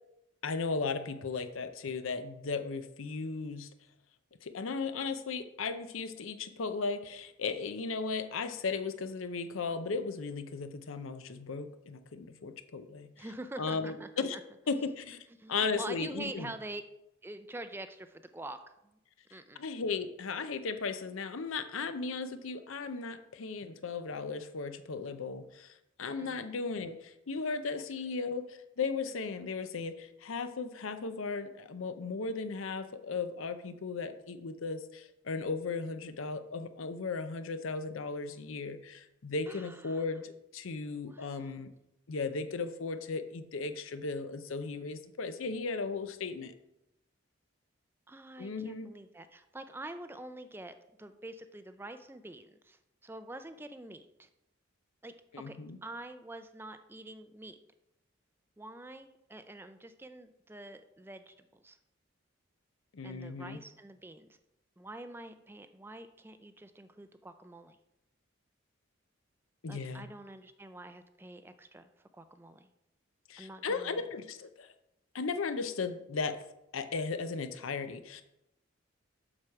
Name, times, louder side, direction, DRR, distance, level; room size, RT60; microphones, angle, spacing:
voice 1, 0.4-3.7 4.4-13.1 13.6-14.4 14.7-15.2 15.5-16.5 19.6-25.7 26.0-41.7 42.1-46.5 48.4-48.9 55.3-55.8 62.9-63.6 69.6-70.1 73.3-74.7 75.1-76.4 76.7-78.2, left 4 dB, 80° left, 10 dB, 0.6 m, -36 dB
voice 2, 13.2-14.4 15.4-16.8 17.2-19.0 19.3-19.6 26.2-26.5 39.5-40.0 41.0-41.6 48.1-54.3 55.0-55.2 55.4-57.6 58.6-61.8 63.0-64.4 64.8-67.8 69.7-72.7 73.4-74.0, right 2 dB, 10° right, 10 dB, 0.3 m, -46 dB
7.4 x 6.3 x 4.7 m, 0.87 s
head